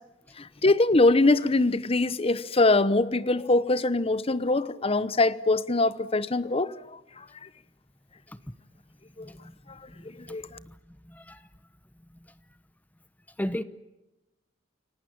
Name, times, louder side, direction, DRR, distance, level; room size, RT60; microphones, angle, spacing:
voice 1, 0.4-7.0 9.2-9.3 10.3-10.5, left 2 dB, 30° left, 0.9 m, -23 dB
voice 2, 9.2-9.5 10.0-10.4 10.6-10.8 11.0-11.5 13.4-13.6, equal, 10° left, 0.9 m, -36 dB
29.0 x 18.0 x 8.9 m
head